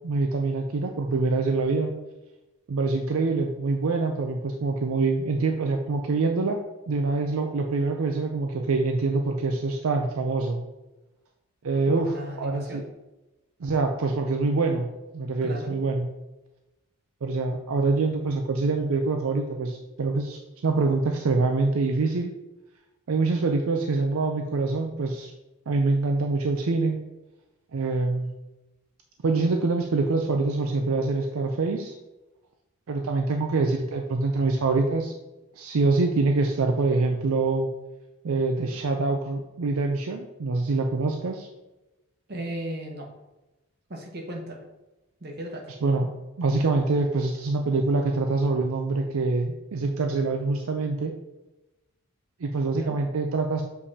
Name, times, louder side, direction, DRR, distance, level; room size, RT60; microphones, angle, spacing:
voice 1, 0.0-1.9 2.7-6.6 6.9-10.6 11.6-12.8 13.6-14.9 15.1-16.1 17.2-22.3 23.1-25.3 25.7-27.0 27.7-28.3 29.2-32.0 32.9-35.1 35.6-37.7 38.2-41.5 45.8-46.1 46.4-51.1 52.4-53.6, right 3 dB, 70° right, 4 dB, 0.5 m, -25 dB
voice 2, 11.9-12.8 15.4-15.7 42.3-43.1 43.9-44.6 45.2-45.6 52.7-53.0, equal, 45° right, 0 dB, 1.0 m, -35 dB
6.7 x 5.2 x 2.8 m, 1.0 s
head